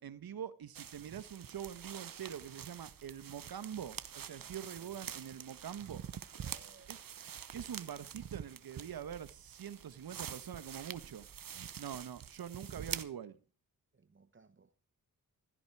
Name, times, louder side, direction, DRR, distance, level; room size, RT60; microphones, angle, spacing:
voice 1, 0.0-6.0 6.9-7.0 7.5-11.3 11.8-13.4, right 9 dB, 85° right, 1.3 m, -44 dB
sound 1, 0.7-13.0, right 8 dB, 70° right, 1.1 m, -46 dB
voice 2, 4.3-5.2 6.3-6.9 13.9-14.7, right 4 dB, 35° right, 1.2 m, -64 dB
16.0 x 14.0 x 4.7 m
cardioid pair, 85°, 36 cm